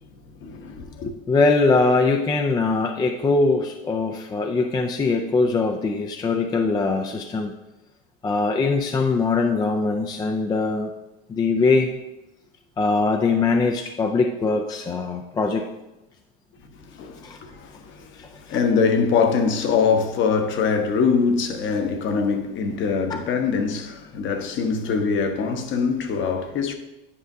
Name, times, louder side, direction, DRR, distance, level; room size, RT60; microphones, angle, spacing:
voice 1, 0.4-1.1 16.8-26.7, left 5 dB, 40° left, 1.0 m, -23 dB
voice 2, 1.3-7.5 8.2-10.9 11.3-12.0 12.8-15.7 17.2-17.4 18.2-18.6 23.1-23.2, left 3 dB, 15° left, 0.4 m, -22 dB
9.9 x 5.0 x 2.7 m
supercardioid pair, 115°, 29 cm